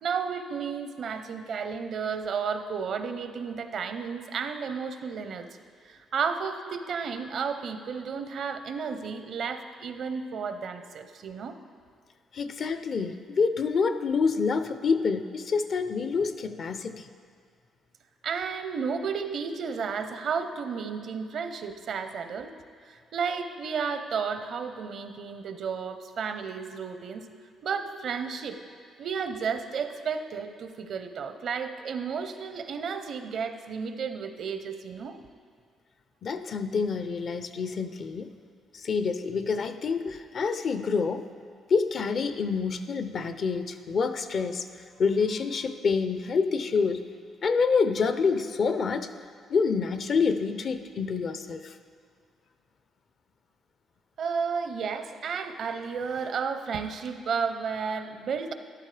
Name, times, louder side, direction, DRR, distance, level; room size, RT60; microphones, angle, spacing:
voice 1, 0.0-5.5 5.8-11.5 18.2-22.5 22.8-27.3 27.6-28.6 29.0-35.2 54.2-58.5, right 6 dB, 65° right, 9 dB, 0.7 m, -32 dB
voice 2, 12.3-17.1 36.2-38.3 38.7-41.2 41.7-44.7 45.0-47.0 47.4-49.1 49.5-51.7, left 5 dB, 55° left, 10 dB, 0.6 m, -27 dB
13.0 x 11.5 x 3.3 m, 2.2 s
cardioid pair, 90°, 0 cm